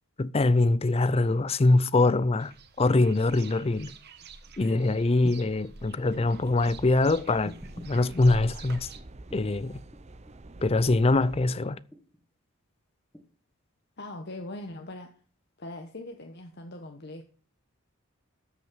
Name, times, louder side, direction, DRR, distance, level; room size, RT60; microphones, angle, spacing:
voice 1, 0.2-3.9 4.6-7.5 7.8-8.9 9.3-9.8 10.6-11.8, left 2 dB, 25° left, 0.5 m, -23 dB
sound 1, 2.4-9.0, right 3 dB, 50° right, 1.4 m, -47 dB
sound 2, 6.1-11.5, right 2 dB, 30° right, 0.7 m, -48 dB
sound 3, 7.4-8.1 9.0-9.5 9.9-10.6 11.6-12.2 13.1-13.3, equal, 5° left, 1.5 m, -45 dB
voice 2, 14.0-15.1 15.6-17.2, left 1 dB, 50° left, 1.2 m, -40 dB
13.5 x 6.3 x 6.2 m
head